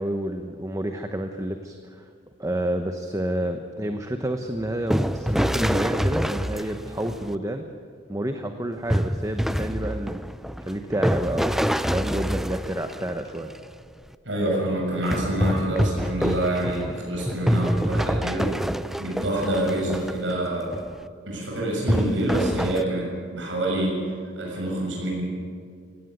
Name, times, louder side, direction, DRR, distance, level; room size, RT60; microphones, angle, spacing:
voice 1, 0.0-2.1 2.4-7.6 8.1-10.2 10.6-13.5, right 1 dB, 15° right, 6 dB, 1.0 m, -29 dB
sound 1, 4.5-7.3 8.9-13.6 15.0-20.3 20.7-20.9 21.9-22.8, equal, ahead, 0.5 m, -26 dB
voice 2, 14.3-18.5 19.0-20.8 21.3-24.1 24.4-25.2, right 1 dB, 85° right, -2 dB, 6.8 m, -26 dB
17.5 x 17.0 x 9.5 m, 2.1 s
head